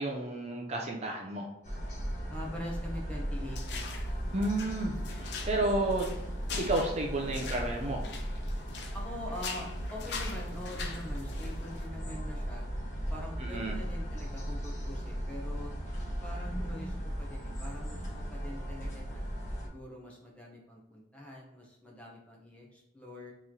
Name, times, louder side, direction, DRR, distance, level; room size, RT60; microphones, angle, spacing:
voice 1, 0.0-1.5 4.3-6.1 6.6-8.0 13.4-13.8, right 2 dB, 35° right, 1 dB, 0.5 m, -31 dB
sound 1, 1.6-19.7, equal, 40° left, 1.3 m, -37 dB
voice 2, 2.3-3.9 8.9-12.6 13.1-15.7 16.2-19.2 19.6-23.3, left 1 dB, 5° left, -3 dB, 0.9 m, -44 dB
sound 2, 3.5-4.1 4.4-9.1 9.3-11.9, left 5 dB, 60° left, 0.6 m, -43 dB
4.1 x 3.1 x 3.8 m, 0.85 s
head